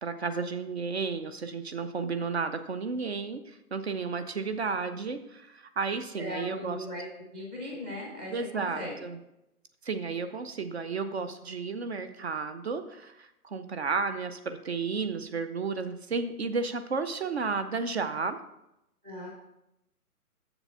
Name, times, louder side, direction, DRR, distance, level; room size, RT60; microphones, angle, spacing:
voice 1, 0.0-6.8 8.3-9.2 9.8-18.4, right 4 dB, 45° right, 10 dB, 0.6 m, -32 dB
voice 2, 6.2-7.1 7.3-9.0 19.0-19.3, left 1 dB, 5° right, -3 dB, 0.6 m, -38 dB
7.0 x 6.9 x 5.5 m, 0.87 s
hypercardioid pair, 150°, 45 cm